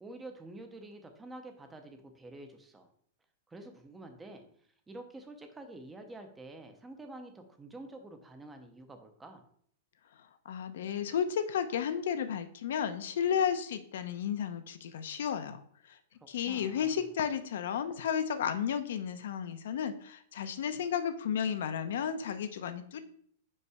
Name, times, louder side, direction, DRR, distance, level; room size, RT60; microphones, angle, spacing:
voice 1, 0.0-2.9 3.5-9.5 16.4-17.0, right 2 dB, 5° right, 5 dB, 0.6 m, -48 dB
voice 2, 10.4-16.0 16.3-23.0, left 8 dB, 60° left, 10 dB, 0.7 m, -33 dB
5.4 x 5.4 x 4.8 m, 0.62 s
supercardioid pair, 180°, 0 cm